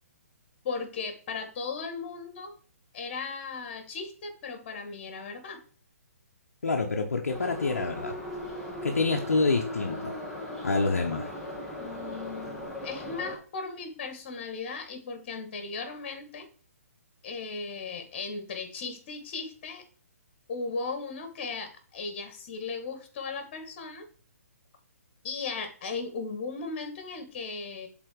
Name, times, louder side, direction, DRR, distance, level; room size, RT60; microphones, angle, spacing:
voice 1, 0.6-2.6 2.9-5.6 11.8-16.5 17.2-19.8 20.5-24.0 25.2-27.9, left 4 dB, 40° left, 6 dB, 2.0 m, -37 dB
voice 2, 6.6-8.1 8.8-10.1 10.6-11.3, left 3 dB, 70° left, 2 dB, 1.0 m, -27 dB
Subway metro underground, 7.3-13.4, left 1 dB, ahead, 1.6 m, -38 dB
7.5 x 4.1 x 4.8 m, 0.43 s
figure-of-eight pair, 130°, 8 cm